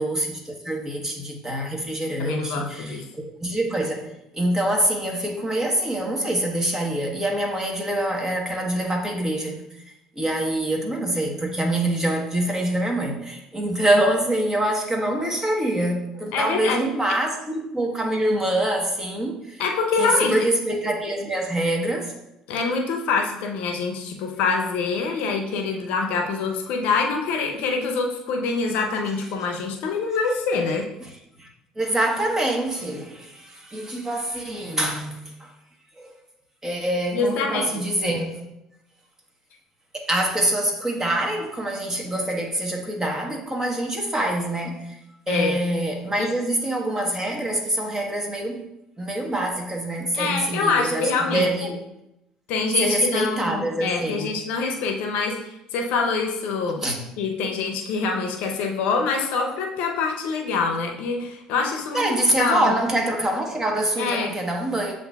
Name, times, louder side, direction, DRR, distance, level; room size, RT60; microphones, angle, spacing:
voice 1, 0.0-4.1 4.3-9.8 10.1-19.6 20.0-22.1 31.0-31.1 31.4-31.5 31.8-35.5 36.0-36.1 36.6-38.4 39.9-45.0 45.3-48.6 49.0-51.8 52.8-54.3 56.8-57.1 61.9-64.9, right 1 dB, 20° right, 1 dB, 1.1 m, -25 dB
voice 2, 2.2-3.0 16.3-16.8 19.6-20.4 22.5-30.9 37.1-37.6 45.3-45.5 46.2-46.3 50.1-51.5 52.5-56.8 57.2-62.0 62.4-62.7 64.0-64.3, left 4 dB, 70° left, 3 dB, 0.6 m, -25 dB
7.7 x 2.6 x 2.3 m, 0.87 s
hypercardioid pair, 70°, 2 cm